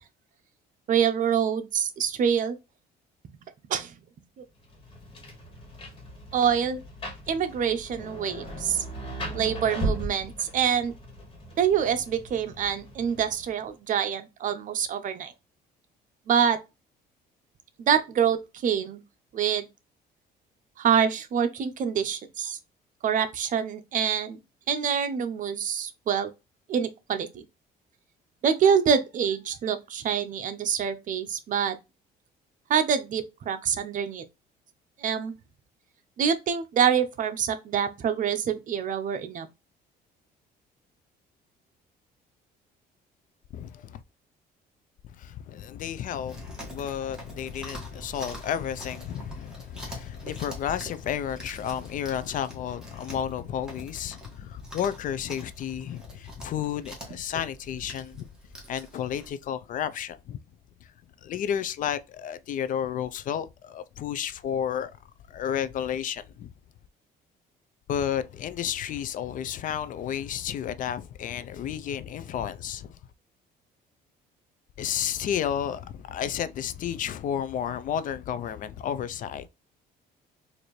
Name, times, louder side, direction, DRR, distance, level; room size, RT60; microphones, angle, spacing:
voice 1, 0.9-2.6 3.7-3.9 6.3-6.8 7.3-8.8 9.3-10.9 11.6-15.3 16.3-16.6 17.8-19.0 19.3-19.7 20.8-22.6 23.0-24.4 24.7-26.3 26.7-27.4 28.4-31.8 32.7-34.2 35.0-35.4 36.2-39.5, right 8 dB, 50° right, 0.6 m, -26 dB
Rain, 4.6-13.7, right 1 dB, 30° left, 1.6 m, -37 dB
voice 2, 43.5-44.0 45.2-58.3 58.7-60.4 60.8-60.9 61.2-64.9 65.3-66.5 67.9-73.0 74.8-79.5, left 9 dB, 50° left, 0.4 m, -32 dB
Chewing mastication, 46.3-59.3, right 1 dB, 5° right, 1.5 m, -45 dB
4.2 x 2.6 x 3.1 m
cardioid pair, 110°, 17 cm